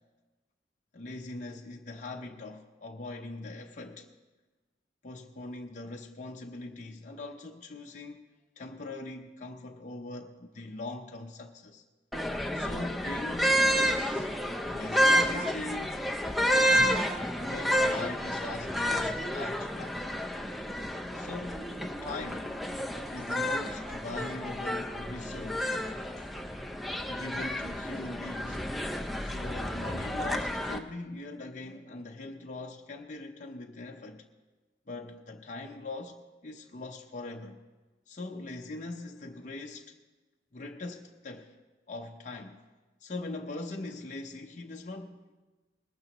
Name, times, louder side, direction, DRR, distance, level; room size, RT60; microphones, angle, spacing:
voice 1, 0.9-4.1 5.0-8.2 8.6-11.8 12.5-14.3 14.7-16.0 16.4-17.1 17.4-20.0 21.1-22.5 23.1-25.8 26.2-26.3 27.0-28.6 29.2-34.3 34.9-37.6 38.1-40.0 40.5-41.5 41.9-42.6 43.0-45.3, left 2 dB, 40° left, 0.7 m, -41 dB
sound 1, 12.1-30.8, equal, ahead, 0.6 m, -30 dB
21.0 x 12.5 x 3.0 m
head